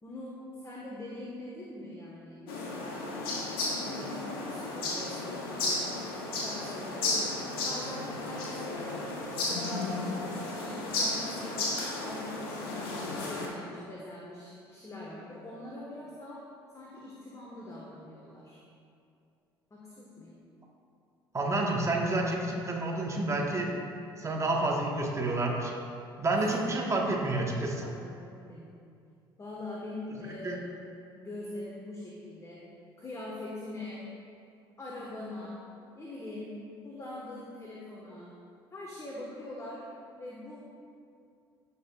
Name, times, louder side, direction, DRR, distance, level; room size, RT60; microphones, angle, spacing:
voice 1, 0.0-3.0 3.8-6.0 6.4-7.2 7.6-11.7 12.1-16.4 16.7-18.6 19.7-20.4 26.3-27.1 27.8-28.7 29.4-30.6 31.1-32.6 33.0-34.0 34.8-35.6 35.9-36.5 36.8-38.3 38.7-39.8 40.2-40.6, left 1 dB, 25° left, -4 dB, 1.5 m, -43 dB
sound 1, 2.5-13.5, left 2 dB, 70° left, 1.3 m, -34 dB
voice 2, 21.3-23.7 24.2-25.7 26.2-27.9 30.4-30.6, right 2 dB, 25° right, -1 dB, 1.5 m, -29 dB
15.5 x 5.5 x 2.5 m, 2.5 s
figure-of-eight pair, 55°, 13 cm